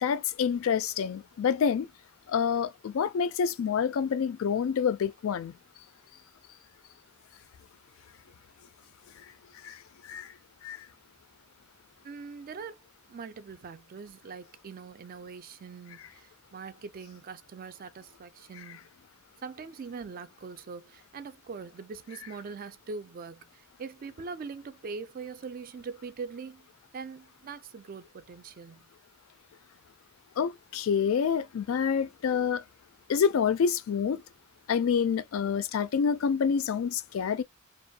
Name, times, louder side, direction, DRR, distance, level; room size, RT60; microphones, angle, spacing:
voice 1, 0.0-1.9 2.3-5.5 9.6-9.8 10.0-10.3 10.6-10.8 30.4-32.6 33.1-34.2 34.7-37.4, left 7 dB, 70° left, 0.3 m, -27 dB
voice 2, 12.0-12.8 13.1-18.8 19.4-26.7 26.9-28.9, right 5 dB, 40° right, 0.3 m, -42 dB
2.5 x 2.2 x 2.7 m
head